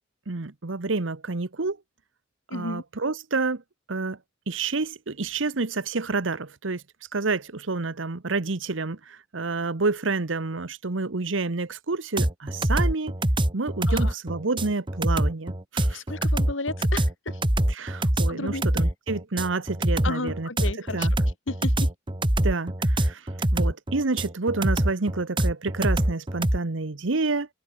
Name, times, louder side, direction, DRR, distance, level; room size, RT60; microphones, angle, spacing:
voice 1, 0.3-1.8 2.5-3.6 3.9-4.2 4.5-6.8 7.1-13.1 13.5-16.0 17.7-20.5 20.9-21.1 22.4-23.2 23.5-27.5, right 3 dB, 80° right, 1.1 m, -29 dB
voice 2, 2.5-2.8 13.9-14.1 15.9-17.4 18.3-18.6 20.0-21.1 21.5-21.9, left 2 dB, 90° left, 2.9 m, -33 dB
sound 1, 12.2-26.6, right 1 dB, 25° right, 1.9 m, -24 dB
head